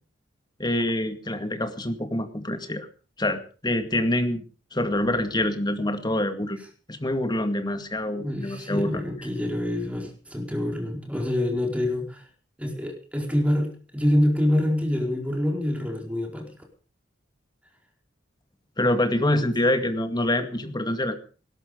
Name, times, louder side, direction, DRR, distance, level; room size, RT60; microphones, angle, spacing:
voice 1, 0.6-2.9 3.2-4.4 4.7-6.6 6.9-9.0 18.8-21.2, left 1 dB, 20° left, 8 dB, 2.1 m, -26 dB
voice 2, 8.0-12.2 12.6-16.5 19.4-19.7, left 1 dB, 5° right, 2 dB, 4.6 m, -26 dB
19.0 x 12.5 x 5.4 m, 0.39 s
head